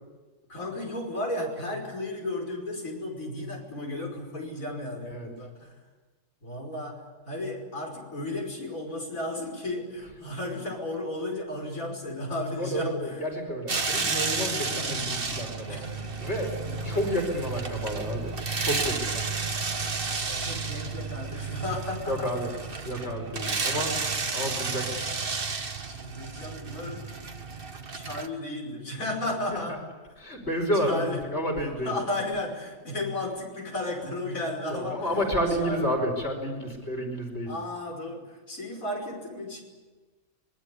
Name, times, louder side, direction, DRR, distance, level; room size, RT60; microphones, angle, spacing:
voice 1, 0.5-5.8 6.4-13.3 14.5-15.2 15.7-16.1 16.6-17.1 20.3-22.3 24.0-25.0 25.8-27.2 27.9-29.8 30.7-31.2 31.6-35.2 35.6-36.0 37.5-39.6, left 1 dB, 80° left, 1 dB, 5.9 m, -34 dB
voice 2, 12.6-15.8 16.2-16.5 16.8-18.3 18.6-19.2 22.1-22.5 22.8-23.9 24.3-25.0 30.2-32.0 34.7-37.5, equal, 55° left, 3 dB, 5.4 m, -30 dB
sound 1, 13.7-28.3, right 4 dB, 45° right, 1.6 m, -32 dB
25.5 x 22.5 x 8.5 m, 1.3 s
omnidirectional pair, 1.4 m